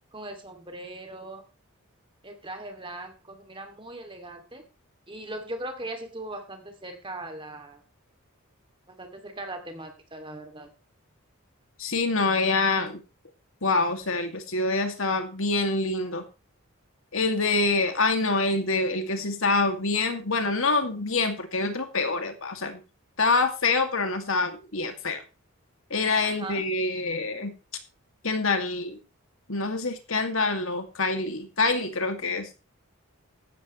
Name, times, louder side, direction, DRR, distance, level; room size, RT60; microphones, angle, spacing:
voice 1, 0.1-1.4 2.2-4.6 5.1-7.8 8.9-10.7 26.2-26.6, right 1 dB, 25° right, 5 dB, 2.6 m, -39 dB
voice 2, 11.8-13.0 13.6-16.2 17.1-22.8 23.2-25.2 25.9-27.5 28.2-29.0 29.5-32.6, left 3 dB, 65° left, 6 dB, 2.3 m, -26 dB
15.0 x 12.5 x 3.2 m, 0.30 s
head